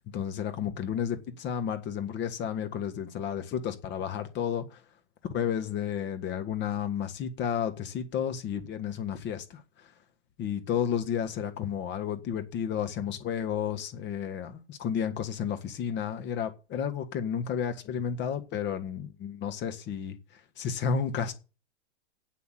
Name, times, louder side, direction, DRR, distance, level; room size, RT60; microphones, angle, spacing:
voice 1, 0.1-4.8 5.3-9.9 10.4-21.3, left 8 dB, 30° left, 1.6 m, -32 dB
8.4 x 8.2 x 7.7 m
hypercardioid pair, 120°, 33 cm